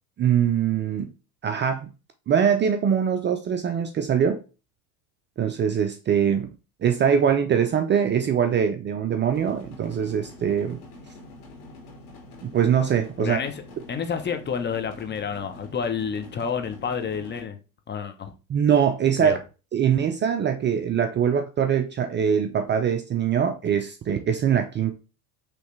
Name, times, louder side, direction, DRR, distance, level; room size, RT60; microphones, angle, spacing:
voice 1, 0.2-1.1 1.4-1.9 2.3-4.4 5.4-6.5 6.8-10.8 12.4-13.4 18.5-19.4 19.7-24.9, right 8 dB, 25° right, 0.5 m, -23 dB
sound 1, 9.3-17.4, left 1 dB, 75° left, 2.2 m, -45 dB
voice 2, 13.2-13.5 13.9-17.6 17.9-18.3 19.2-19.4, left 6 dB, 25° left, 0.8 m, -29 dB
5.2 x 3.2 x 3.2 m
hypercardioid pair, 90°, 44 cm